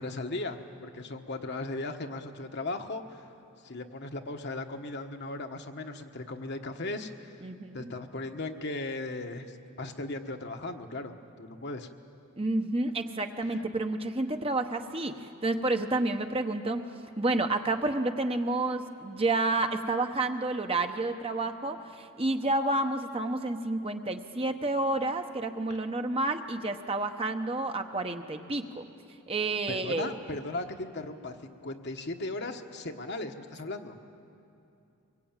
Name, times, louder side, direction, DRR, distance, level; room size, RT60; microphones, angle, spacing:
voice 1, 0.0-3.3 3.6-7.3 7.7-11.9 13.5-13.6 29.7-34.0, left 2 dB, 50° left, 5 dB, 1.3 m, -37 dB
voice 2, 7.4-7.9 12.4-16.8 17.2-28.9 29.3-30.2, right 2 dB, 25° right, 6 dB, 1.0 m, -30 dB
24.0 x 22.5 x 9.0 m, 2.7 s
head